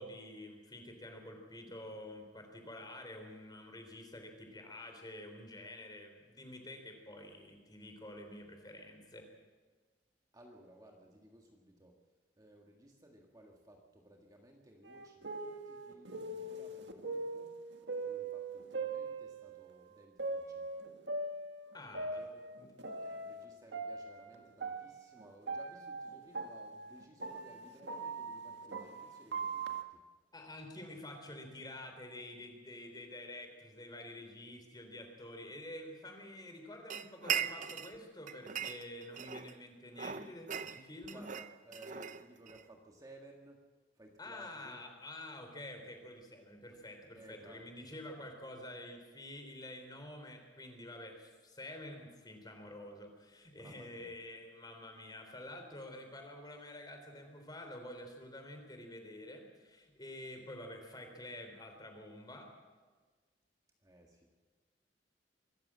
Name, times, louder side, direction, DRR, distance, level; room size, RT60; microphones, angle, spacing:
voice 1, 0.0-9.3 21.7-22.2 22.6-22.7 30.3-41.3 44.2-62.5, left 1 dB, 20° left, 4 dB, 3.6 m, -48 dB
voice 2, 10.3-12.0 12.4-17.6 18.0-20.7 22.1-22.5 23.0-30.0 41.1-43.6 44.0-44.8 46.7-46.8 47.1-47.6 53.6-54.2 63.8-64.3, right 1 dB, 20° right, 1 dB, 1.9 m, -58 dB
sound 1, 14.8-19.7 20.2-23.4 23.7-29.8, right 3 dB, 75° right, 1.7 m, -41 dB
sound 2, 36.9-38.0 38.3-39.6 39.9-42.6, right 7 dB, 45° right, 0.7 m, -39 dB
24.5 x 14.0 x 7.6 m, 1.4 s
head